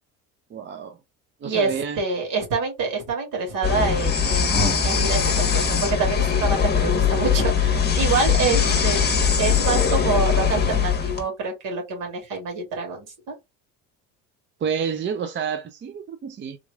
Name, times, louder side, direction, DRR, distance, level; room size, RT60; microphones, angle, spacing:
voice 1, 0.5-1.0 1.4-2.0 8.5-8.8 14.6-16.6, right 7 dB, 35° right, 0.6 m, -29 dB
voice 2, 1.4-13.1, right 4 dB, 65° right, 2.3 m, -26 dB
sound 1, 3.6-11.2, left 6 dB, 30° left, 1.2 m, -21 dB
3.7 x 3.0 x 2.3 m
supercardioid pair, 85°, 35 cm